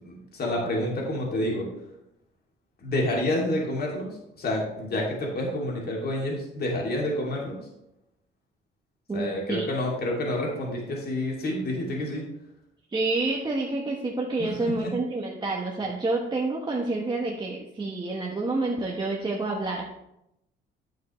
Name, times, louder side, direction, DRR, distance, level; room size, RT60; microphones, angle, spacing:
voice 1, 0.0-1.7 2.8-4.1 4.4-7.6 9.1-12.2 14.4-14.9, left 1 dB, 50° left, -2 dB, 2.6 m, -28 dB
voice 2, 9.1-9.7 12.9-19.9, right 2 dB, 20° right, -2 dB, 1.1 m, -28 dB
9.2 x 7.3 x 3.2 m, 0.84 s
cardioid pair, 90°, 20 cm